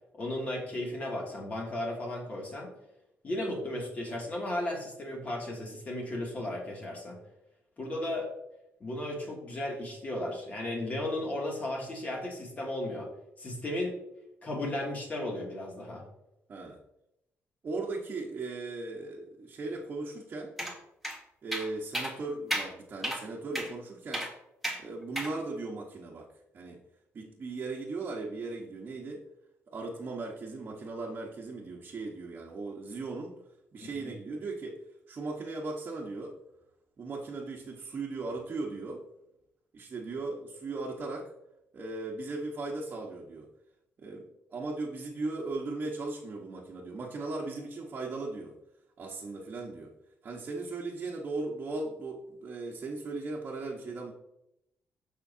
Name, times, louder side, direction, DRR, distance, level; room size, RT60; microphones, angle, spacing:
voice 1, 0.1-2.7 3.2-7.2 7.8-8.3 8.8-13.1 13.4-14.0 14.4-16.0 33.8-34.1, left 1 dB, 30° left, -2 dB, 2.7 m, -35 dB
voice 2, 17.6-20.5 21.4-24.3 24.8-26.3 26.5-26.8 27.1-29.2 29.7-33.3 33.7-34.8 35.1-36.3 37.0-39.0 39.7-41.3 41.7-43.5 44.0-48.5 49.0-49.9 50.2-54.1, right 3 dB, 40° right, -3 dB, 1.4 m, -37 dB
sound 1, 20.6-20.7 21.0-21.2 21.5-21.7 21.9-22.1 22.5-22.7 23.0-23.2 23.5-23.7 24.1-24.3 24.6-24.8 25.2-25.3, equal, ahead, 1.9 m, -32 dB
15.5 x 5.7 x 2.8 m, 0.84 s
cardioid pair, 140°, 5 cm